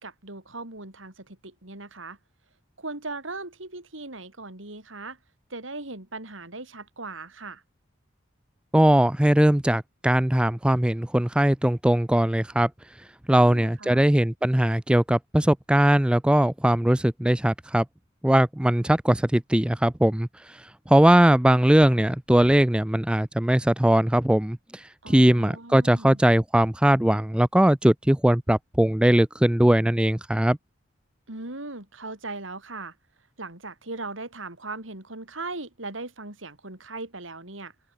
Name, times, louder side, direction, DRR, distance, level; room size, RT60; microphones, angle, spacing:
voice 1, 0.0-2.2 2.8-5.2 5.5-7.6 13.3-14.0 25.0-26.2 31.3-32.9 33.4-37.7, right 3 dB, 85° right, 4.7 m, -38 dB
voice 2, 8.7-12.7 13.3-17.8 18.2-20.3 20.9-30.6, right 1 dB, 5° right, 0.3 m, -20 dB
open air
head